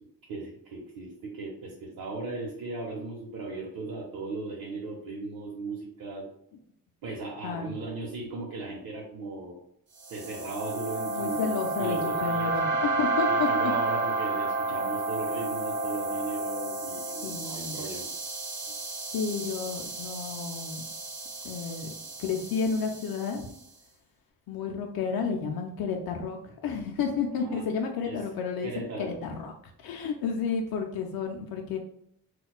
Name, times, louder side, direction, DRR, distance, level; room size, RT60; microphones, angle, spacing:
voice 1, 0.3-6.3 7.0-9.5 10.1-12.7 13.3-18.1 27.4-27.6 28.0-28.2 28.6-29.1, right 3 dB, 70° right, -4 dB, 0.8 m, -37 dB
voice 2, 7.4-7.7 11.1-13.5 17.2-17.8 19.1-20.8 21.4-21.9 22.2-23.5 24.5-29.5 29.8-31.8, left 5 dB, 80° left, 2 dB, 0.5 m, -31 dB
sound 1, 10.0-23.4, right 3 dB, 35° right, 0.5 m, -31 dB
4.2 x 2.3 x 2.3 m, 0.71 s
wide cardioid pair, 150°, 35 cm